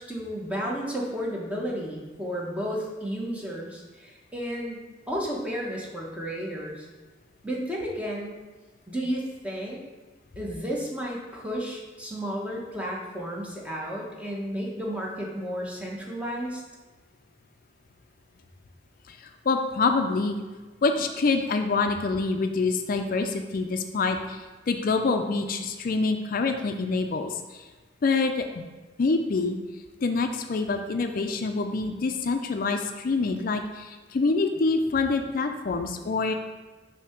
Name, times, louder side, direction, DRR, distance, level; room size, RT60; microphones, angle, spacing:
voice 1, 0.0-4.8 5.1-6.9 7.4-8.4 8.9-9.8 10.4-16.6, equal, 5° right, -3 dB, 1.0 m, -32 dB
voice 2, 19.1-20.4 20.8-27.7 28.0-28.6 29.0-29.6 30.0-36.3, left 3 dB, 50° left, 6 dB, 0.4 m, -26 dB
6.9 x 2.8 x 5.8 m, 1.3 s
head